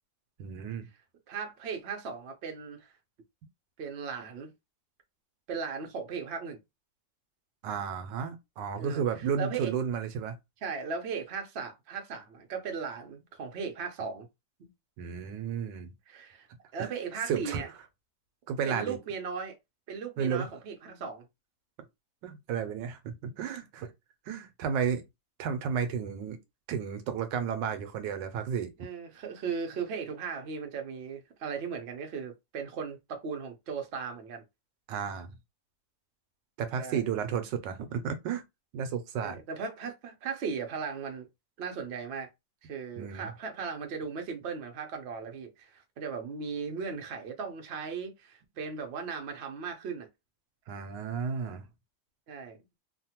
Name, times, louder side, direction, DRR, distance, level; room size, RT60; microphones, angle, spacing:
voice 1, 0.4-0.9 7.6-10.4 15.0-15.9 16.8-16.9 17.3-17.6 18.5-19.0 20.2-20.5 22.2-23.9 24.3-25.0 25.4-26.4 26.7-28.7 34.9-35.3 36.6-38.4 38.7-39.4 43.0-43.3 50.7-51.6, right 7 dB, 80° right, 1.2 m, -32 dB
voice 2, 1.3-2.9 3.8-4.5 5.5-6.6 8.8-9.0 9.4-9.7 10.6-14.3 14.6-14.7 16.1-16.5 16.7-17.7 18.7-19.6 19.9-21.3 28.8-34.4 36.8-37.0 39.2-41.3 41.6-42.3 42.6-50.1 52.3-52.6, right 5 dB, 65° right, 0.6 m, -37 dB
3.1 x 2.2 x 2.8 m
omnidirectional pair, 1.9 m